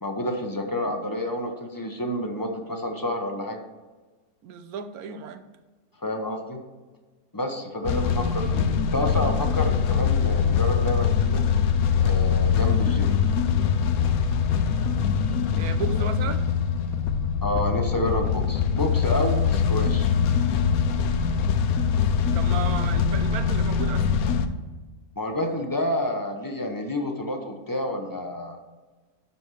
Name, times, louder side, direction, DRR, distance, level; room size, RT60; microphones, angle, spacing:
voice 1, 0.0-3.6 6.0-6.6 7.3-11.4 12.0-13.1 15.9-16.1 17.4-20.1 25.2-28.6, left 1 dB, 20° left, 3 dB, 0.7 m, -29 dB
voice 2, 4.4-5.4 15.6-16.4 22.3-24.1, right 6 dB, 85° right, 9 dB, 1.2 m, -34 dB
sound 1, 7.8-24.5, left 7 dB, 75° left, 1.1 m, -23 dB
12.0 x 4.3 x 4.7 m, 1.3 s
omnidirectional pair, 1.5 m